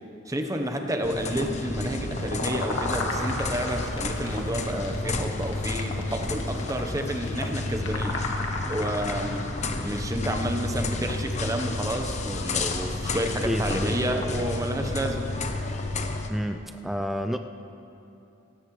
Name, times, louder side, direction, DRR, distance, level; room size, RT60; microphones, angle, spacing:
voice 1, 0.3-8.2 8.7-9.5 9.8-15.3, right 1 dB, 15° right, 4 dB, 0.9 m, -30 dB
sound 1, 1.0-16.3, left 2 dB, 35° left, 0.8 m, -31 dB
sound 2, 1.7-9.8, left 2 dB, 85° left, 1.6 m, -34 dB
voice 2, 13.4-14.0 16.3-17.4, equal, ahead, 6 dB, 0.3 m, -29 dB
17.0 x 15.5 x 3.2 m, 2.8 s
head